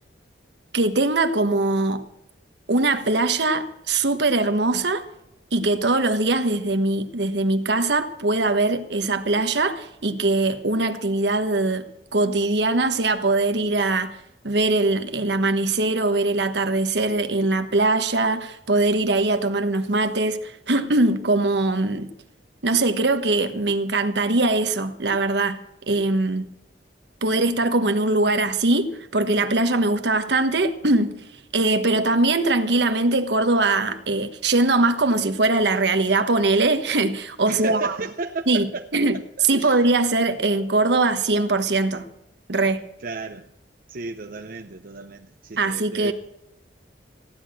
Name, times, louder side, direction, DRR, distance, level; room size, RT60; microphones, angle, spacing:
voice 1, 0.7-2.0 2.7-5.0 5.5-14.2 14.4-22.1 22.6-25.6 25.9-26.5 27.2-31.2 31.5-37.9 38.5-39.2 39.5-42.1 42.5-42.8 45.6-46.1, right 2 dB, 70° right, 1.2 m, -21 dB
voice 2, 37.5-39.0 39.4-39.8 43.0-43.5 43.9-46.1, right 3 dB, 50° right, 0.7 m, -33 dB
15.0 x 10.5 x 7.5 m
head